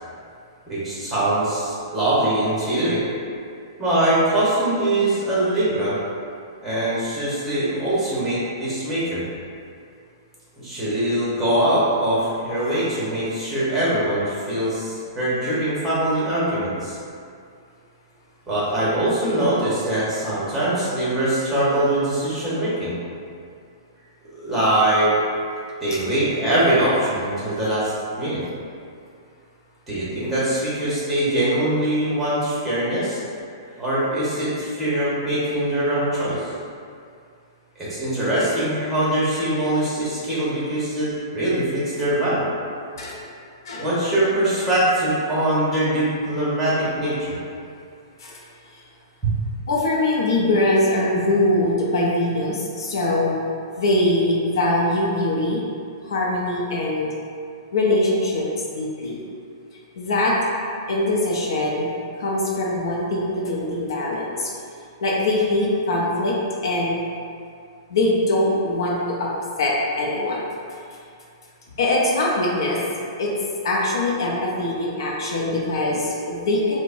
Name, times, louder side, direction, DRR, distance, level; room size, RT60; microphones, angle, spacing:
voice 1, 0.7-3.0 3.8-6.0 6.6-9.2 10.6-17.0 18.5-23.0 24.3-25.1 25.8-27.9 28.2-28.4 29.9-33.2 33.8-36.4 37.8-42.4 43.7-47.4 49.2-49.3, right 1 dB, 5° right, -9 dB, 1.1 m, -22 dB
voice 2, 49.7-53.4 53.8-55.6 56.0-57.1 57.7-58.4 58.7-59.2 60.0-60.3 60.9-61.9 62.2-64.5 65.0-66.4 66.6-67.0 67.9-69.3 69.6-70.4 70.7-70.8 71.8-72.8 73.2-73.3 73.6-76.8, left 1 dB, 75° left, -3 dB, 0.6 m, -22 dB
4.6 x 2.1 x 2.6 m, 2.4 s
hypercardioid pair, 160°, 2 cm